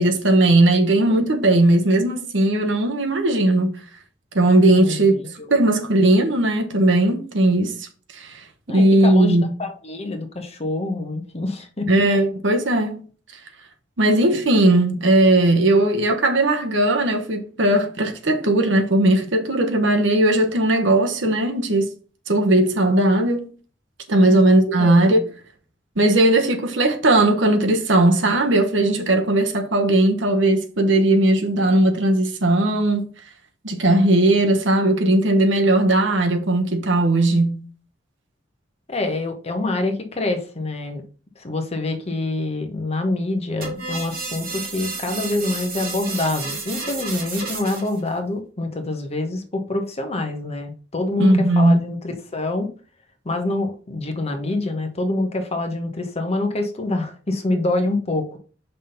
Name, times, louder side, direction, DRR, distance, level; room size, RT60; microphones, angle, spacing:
voice 1, 0.0-3.8 4.3-5.2 5.5-7.9 8.1-9.4 11.9-13.1 14.0-21.9 22.3-23.5 24.1-25.2 26.0-33.1 33.6-37.6 51.2-51.9, right 1 dB, 70° right, 1.1 m, -18 dB
voice 2, 4.7-5.5 8.7-11.9 24.2-24.4 24.8-25.0 38.9-41.0 41.4-52.7 53.2-58.4, left 2 dB, 35° left, 1.0 m, -26 dB
sound 1, 43.6-48.0, right 4 dB, 50° right, 2.0 m, -31 dB
5.5 x 3.6 x 5.7 m
head